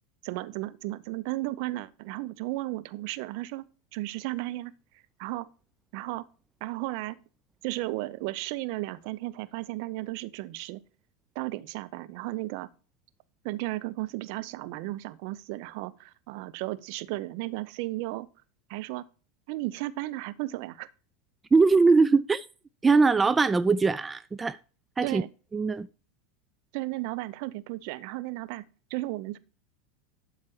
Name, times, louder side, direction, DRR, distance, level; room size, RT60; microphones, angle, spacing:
voice 1, 0.2-3.6 3.9-4.7 5.2-5.5 5.9-6.2 6.6-7.2 7.6-10.8 11.3-12.7 13.4-18.3 18.7-19.0 19.5-20.9 25.0-25.3 26.7-29.4, right 19 dB, 55° right, 0.7 m, -34 dB
voice 2, 21.5-22.5 22.8-24.6 25.0-25.2 25.5-25.9, right 4 dB, 15° right, 0.3 m, -21 dB
12.0 x 4.6 x 4.4 m
hypercardioid pair, 85°, 0 cm